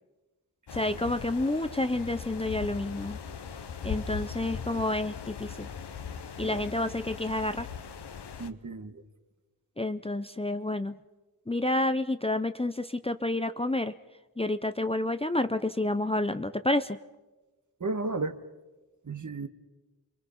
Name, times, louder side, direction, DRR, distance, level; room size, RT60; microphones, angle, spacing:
sound 1, 0.7-8.5, left 7 dB, 90° left, 1.1 m, -40 dB
voice 1, 0.7-3.2 3.8-5.7 6.4-7.7 9.8-11.0 11.5-13.9 14.4-17.0, left 2 dB, 15° left, 10 dB, 0.7 m, -29 dB
voice 2, 8.4-9.0 17.8-18.4 19.0-19.5, right 3 dB, 50° right, 8 dB, 1.6 m, -34 dB
29.0 x 23.0 x 5.8 m, 1.2 s
wide cardioid pair, 70°, 40 cm